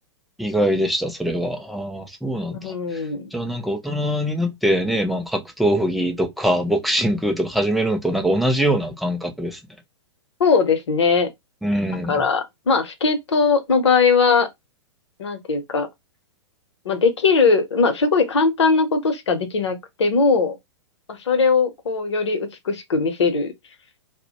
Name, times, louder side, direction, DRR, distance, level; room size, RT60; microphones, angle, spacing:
voice 1, 0.4-3.0 3.3-9.6 11.6-12.2, equal, ahead, 0.3 m, -23 dB
voice 2, 2.5-3.3 10.4-11.3 12.1-14.5 15.2-15.9 16.8-20.6 21.1-23.5, left 4 dB, 65° left, 0.7 m, -20 dB
2.1 x 2.1 x 2.8 m
figure-of-eight pair, 110°, 16 cm